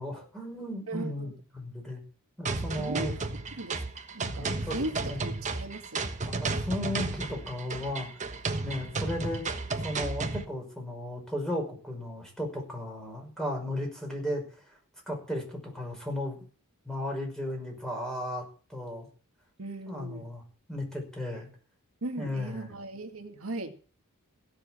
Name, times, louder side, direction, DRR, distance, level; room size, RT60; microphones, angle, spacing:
voice 1, 0.0-2.0 2.4-3.1 4.3-5.2 6.2-8.1 8.6-9.4 9.8-14.8 15.1-16.4 16.9-18.4 18.7-19.1 19.9-20.4 20.7-21.5 22.2-22.7, left 1 dB, 5° left, 1 dB, 5.7 m, -35 dB
voice 2, 0.9-1.3 2.7-3.2 3.6-3.8 4.1-4.9 5.2-6.1 19.6-20.3 22.0-23.7, right 2 dB, 65° right, 6 dB, 2.0 m, -37 dB
sound 1, 2.5-10.5, right 3 dB, 35° right, 1.3 m, -33 dB
16.5 x 7.5 x 7.5 m, 0.39 s
head